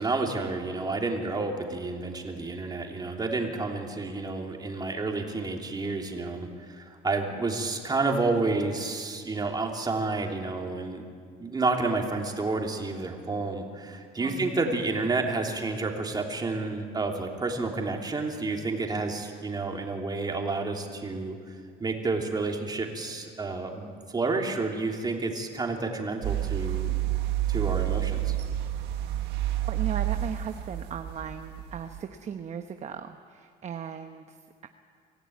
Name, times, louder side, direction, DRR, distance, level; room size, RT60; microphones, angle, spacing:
voice 1, 0.0-11.0 11.4-21.4 21.8-23.9 24.1-27.0 27.5-28.3, right 3 dB, 25° right, 2 dB, 3.1 m, -30 dB
voice 2, 14.2-14.7 27.8-28.0 29.7-34.7, right 7 dB, 40° right, 6 dB, 1.0 m, -38 dB
sound 1, 26.2-32.0, right 13 dB, 85° right, 1.6 m, -29 dB
24.5 x 15.5 x 9.5 m, 2.1 s
cardioid pair, 110°, 17 cm